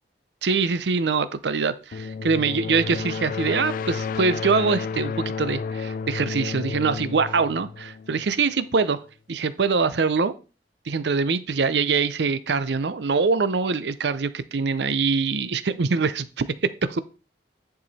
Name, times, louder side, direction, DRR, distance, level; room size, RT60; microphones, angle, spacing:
voice 1, 0.4-9.0 9.3-10.3 10.9-17.0, right 4 dB, 70° right, 14 dB, 0.6 m, -24 dB
sound 1, 1.9-8.6, left 5 dB, 50° left, 0.3 m, -31 dB
10.5 x 4.8 x 4.1 m, 0.33 s
head